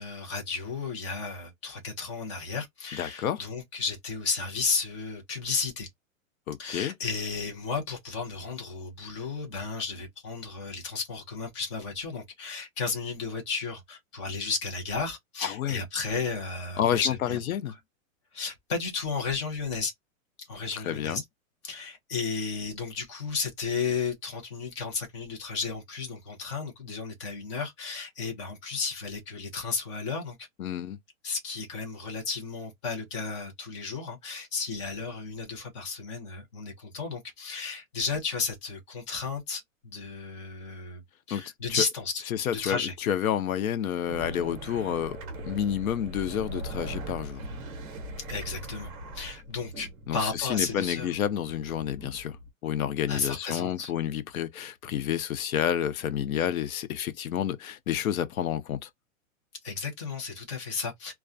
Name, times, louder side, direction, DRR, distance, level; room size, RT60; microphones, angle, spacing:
voice 1, 0.0-5.9 6.6-17.4 18.3-19.9 20.4-21.2 21.6-30.5 31.2-41.0 41.3-42.2 42.5-42.9 48.3-51.1 53.1-53.9 59.6-61.1, left 4 dB, 20° left, 0.6 m, -33 dB
voice 2, 3.0-3.4 6.5-6.9 15.4-15.8 16.8-17.7 20.8-21.2 30.6-31.0 41.3-41.4 42.3-45.2 45.4-47.4 50.1-52.4 52.6-58.9, left 10 dB, 90° left, 0.7 m, -29 dB
sound 1, 44.1-52.5, right 1 dB, 25° right, 0.9 m, -40 dB
2.3 x 2.2 x 2.4 m
supercardioid pair, 180°, 41 cm